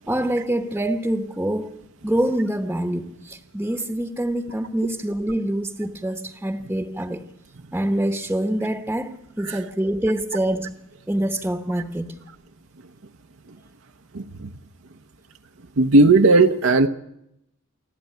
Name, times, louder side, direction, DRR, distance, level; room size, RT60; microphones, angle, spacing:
voice 1, 0.1-7.2 7.7-10.8 11.1-12.2, right 1 dB, 10° right, 1.0 m, -25 dB
voice 2, 14.1-14.5 15.8-16.9, right 3 dB, 75° right, 0.9 m, -16 dB
28.0 x 12.0 x 9.2 m
head